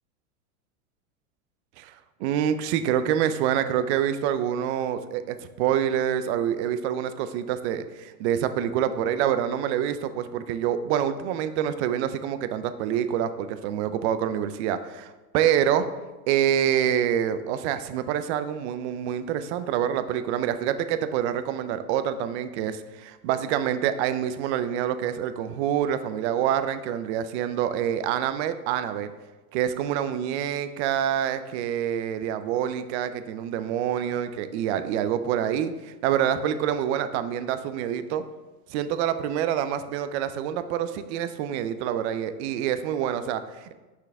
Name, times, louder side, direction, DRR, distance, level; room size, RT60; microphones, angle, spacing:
voice 1, 2.2-15.9 16.3-29.1 29.5-38.2 38.7-43.7, right 9 dB, 50° right, 11 dB, 0.5 m, -26 dB
6.1 x 5.6 x 3.4 m, 1.2 s
supercardioid pair, 135°, 45 cm